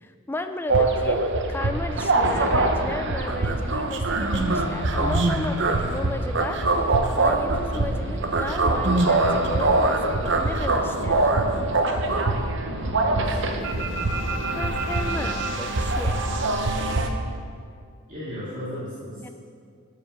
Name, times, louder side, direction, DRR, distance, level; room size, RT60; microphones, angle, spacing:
voice 1, 0.0-11.3 14.5-16.2 19.2-19.3, left 2 dB, 10° left, 7 dB, 0.3 m, -34 dB
sound 1, 0.7-17.1, right 2 dB, 55° right, 0.7 m, -23 dB
voice 2, 12.7-14.1 14.4-14.5 18.1-19.2, equal, 35° right, -11 dB, 2.0 m, -36 dB
12.0 x 5.0 x 6.0 m, 2.2 s
head